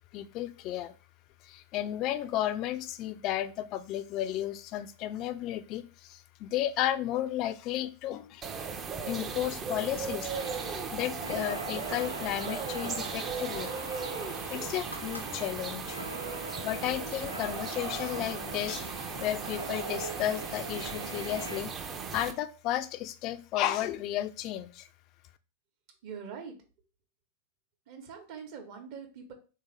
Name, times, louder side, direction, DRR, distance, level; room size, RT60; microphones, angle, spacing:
voice 1, 0.1-0.9 1.4-8.5 9.0-10.3 10.9-13.7 14.4-16.0 16.6-24.9, left 12 dB, 40° left, 12 dB, 0.3 m, -33 dB
sound 1, 8.4-22.3, right 5 dB, 25° right, 0.5 m, -37 dB
sound 2, 10.3-21.6, right 2 dB, 85° right, 0.5 m, -42 dB
sound 3, 14.7-16.2 17.2-17.3, left 1 dB, 85° left, 0.5 m, -50 dB
voice 2, 26.0-26.6 27.9-29.3, right 6 dB, 45° right, 4 dB, 0.9 m, -43 dB
3.4 x 2.8 x 3.2 m, 0.35 s
figure-of-eight pair, 90°, 0 cm